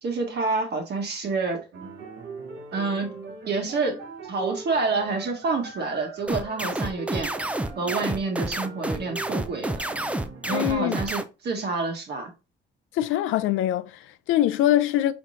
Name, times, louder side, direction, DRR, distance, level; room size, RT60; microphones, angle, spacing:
voice 1, 0.0-1.7 2.7-3.2 3.5-4.0 4.3-7.3 7.8-9.8 10.4-12.3, right 3 dB, 55° right, 1.3 m, -28 dB
sound 1, 1.7-10.7, right 4 dB, 75° right, 1.1 m, -41 dB
sound 2, 6.3-11.2, right 1 dB, 5° right, 0.4 m, -29 dB
voice 2, 10.5-11.0 12.9-15.1, left 12 dB, 85° left, 0.4 m, -23 dB
4.3 x 3.7 x 2.6 m
cardioid pair, 90°, 20 cm